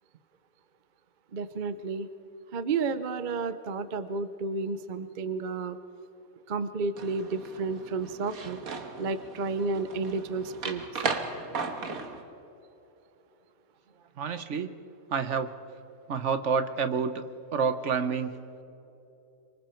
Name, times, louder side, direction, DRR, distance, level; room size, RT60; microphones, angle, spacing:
voice 1, 1.3-2.1 2.5-5.8 6.5-8.6 9.0-10.8, right 4 dB, 45° right, 12 dB, 0.7 m, -31 dB
sound 1, 7.0-12.2, right 4 dB, 85° right, 1.9 m, -36 dB
voice 2, 14.2-14.7 15.1-15.5 16.1-17.2 17.5-18.4, right 6 dB, 60° right, 10 dB, 1.2 m, -28 dB
26.0 x 24.5 x 4.5 m, 2.9 s
omnidirectional pair, 1.5 m